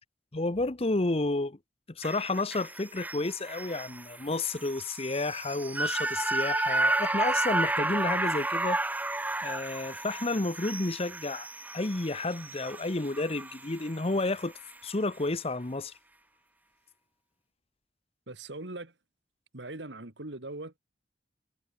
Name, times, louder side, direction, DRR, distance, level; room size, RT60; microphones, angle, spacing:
voice 1, 0.3-1.6 1.9-8.8 9.4-11.5 11.7-14.5 14.8-15.9, left 2 dB, 35° left, 1.0 m, -31 dB
sound 1, 2.0-14.4 14.7-14.8, right 2 dB, 10° right, 0.9 m, -32 dB
voice 2, 18.3-18.9 19.5-20.8, right 2 dB, 80° right, 2.4 m, -40 dB
head